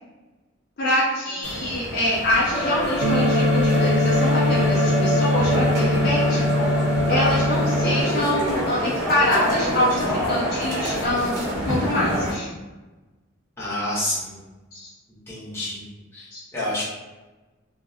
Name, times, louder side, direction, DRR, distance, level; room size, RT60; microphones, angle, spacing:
voice 1, 0.8-6.5 7.1-11.3 11.6-12.5 14.7-14.9 16.3-16.4, left 1 dB, 50° left, -5 dB, 0.4 m, -25 dB
sound 1, 1.4-12.3, equal, 35° right, 0.9 m, -28 dB
sound 2, 2.5-8.5, right 1 dB, 10° right, 1.1 m, -27 dB
sound 3, 3.0-8.0, left 2 dB, 75° right, 0.4 m, -22 dB
voice 2, 13.6-14.4 15.3-15.8 16.1-16.8, left 1 dB, 10° left, -9 dB, 0.8 m, -28 dB
2.4 x 2.0 x 2.6 m, 1.2 s
head